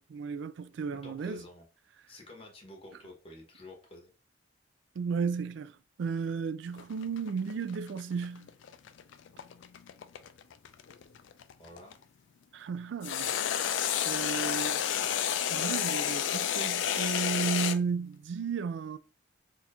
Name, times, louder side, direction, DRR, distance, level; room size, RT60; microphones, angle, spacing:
voice 1, 0.0-1.4 5.0-8.5 12.5-13.3 14.0-14.7 15.5-19.0, right 5 dB, 65° right, 0.3 m, -34 dB
voice 2, 1.0-1.7 2.1-4.1 11.6-11.9 14.3-15.2, left 1 dB, 30° left, 1.0 m, -50 dB
sound 1, 6.7-11.9 13.0-17.8, left 9 dB, 70° left, 0.3 m, -31 dB
2.8 x 2.5 x 4.1 m
head